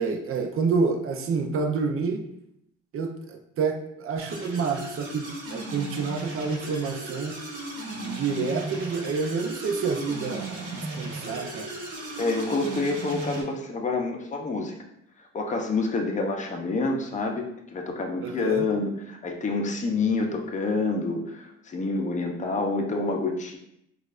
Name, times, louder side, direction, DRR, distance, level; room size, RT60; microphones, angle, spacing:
voice 1, 0.0-2.2 2.9-7.4 7.9-11.7 18.2-18.7, right 4 dB, 45° right, 5 dB, 0.5 m, -28 dB
sound 1, 4.2-13.4, right 2 dB, 85° right, 1.1 m, -36 dB
voice 2, 12.2-14.7 15.3-23.6, left 3 dB, 25° left, 2 dB, 0.6 m, -27 dB
4.5 x 2.4 x 2.4 m, 0.77 s
cardioid pair, 90°, 30 cm